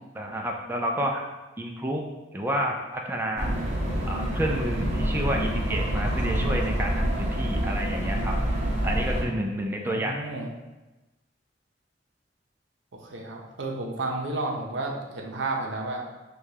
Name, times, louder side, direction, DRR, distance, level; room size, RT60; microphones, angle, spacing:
voice 1, 0.2-1.2 1.6-2.0 2.3-3.5 4.1-10.2, equal, 10° right, 0 dB, 0.3 m, -30 dB
sound 1, 3.4-9.2, equal, 40° right, 0.9 m, -27 dB
voice 2, 9.9-10.5 13.0-16.0, right 2 dB, 75° right, 1 dB, 0.7 m, -32 dB
6.4 x 2.3 x 2.8 m, 1.1 s
head